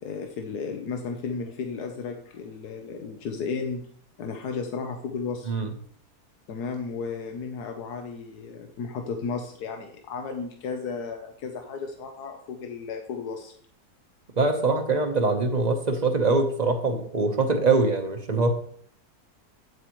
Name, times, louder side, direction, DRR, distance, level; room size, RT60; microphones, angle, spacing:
voice 1, 0.0-3.8 4.2-5.6 6.5-13.5, left 5 dB, 90° left, 4 dB, 1.4 m, -34 dB
voice 2, 14.4-18.5, right 3 dB, 30° right, 5 dB, 1.0 m, -23 dB
9.0 x 8.0 x 3.1 m, 0.62 s
omnidirectional pair, 1.7 m